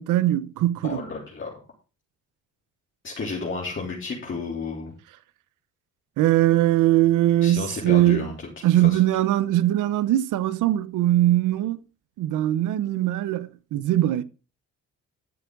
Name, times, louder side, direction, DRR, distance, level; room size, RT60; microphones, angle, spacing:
voice 1, 0.0-1.0 6.2-8.3 8.6-11.8 12.2-14.2, right 14 dB, 90° right, 0.8 m, -21 dB
voice 2, 0.8-1.5 3.0-4.9 7.4-8.5 8.8-9.0, left 4 dB, 40° left, 3.2 m, -32 dB
13.0 x 7.1 x 3.9 m
cardioid pair, 90°, 30 cm